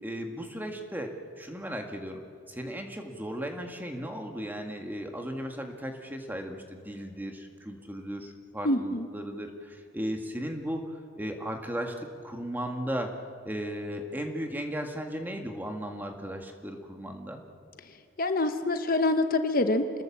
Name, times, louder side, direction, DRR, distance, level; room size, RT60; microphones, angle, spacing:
voice 1, 0.0-1.1 1.4-13.1 13.4-17.4, equal, 10° right, 4 dB, 1.9 m, -36 dB
voice 2, 8.6-9.1 18.2-20.0, left 2 dB, 45° left, 8 dB, 1.1 m, -26 dB
27.5 x 20.5 x 7.4 m, 2.4 s
head